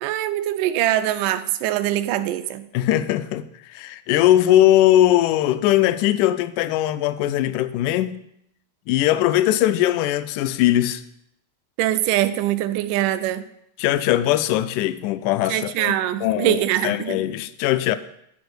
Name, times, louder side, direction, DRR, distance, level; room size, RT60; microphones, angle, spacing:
voice 1, 0.0-2.7 11.8-13.5 15.5-17.2, right 13 dB, 80° right, 2.1 m, -23 dB
voice 2, 2.7-3.4 3.7-8.2 8.9-11.0 13.8-15.9 16.2-18.0, left 13 dB, 80° left, 2.0 m, -20 dB
10.0 x 4.4 x 7.9 m
omnidirectional pair, 3.7 m